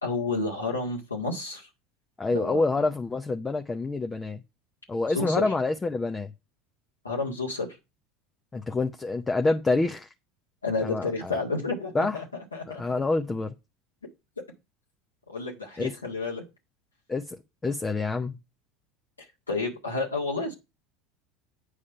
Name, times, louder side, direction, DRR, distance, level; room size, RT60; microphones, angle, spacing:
voice 1, 0.0-1.7 2.3-2.6 5.1-5.4 7.0-7.7 10.6-13.0 15.3-16.4 19.5-20.5, left 3 dB, 90° left, 1.8 m, -30 dB
voice 2, 2.2-4.4 4.9-6.3 8.5-10.1 10.8-11.4 11.9-12.2 12.7-13.5 15.8-15.9 17.1-17.4 17.6-18.4, left 3 dB, 20° left, 0.8 m, -27 dB
8.6 x 5.0 x 5.6 m
figure-of-eight pair, 75°, 0 cm